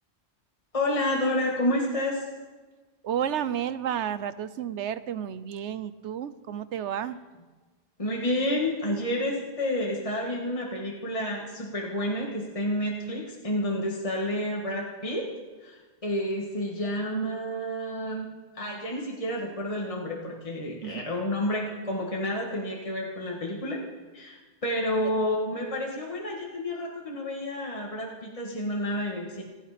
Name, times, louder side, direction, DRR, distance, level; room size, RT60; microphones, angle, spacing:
voice 1, 0.7-2.3 8.0-15.3 15.6-18.3 18.5-23.8 24.1-29.4, left 1 dB, 30° left, -1 dB, 1.9 m, -30 dB
voice 2, 3.0-7.2 20.8-21.0, right 9 dB, 80° right, 14 dB, 1.0 m, -31 dB
28.0 x 9.9 x 5.1 m, 1.3 s
omnidirectional pair, 1.2 m